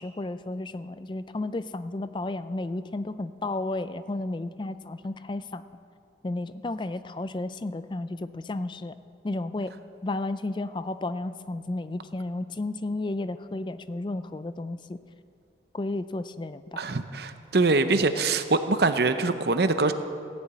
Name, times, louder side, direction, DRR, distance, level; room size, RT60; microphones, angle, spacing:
voice 1, 0.0-5.6 6.2-8.9 9.2-9.7 10.0-15.0 15.7-16.8, left 2 dB, 25° left, 13 dB, 0.3 m, -32 dB
voice 2, 16.8-19.9, right 3 dB, 55° right, 9 dB, 0.7 m, -23 dB
15.5 x 7.2 x 8.9 m, 2.4 s
head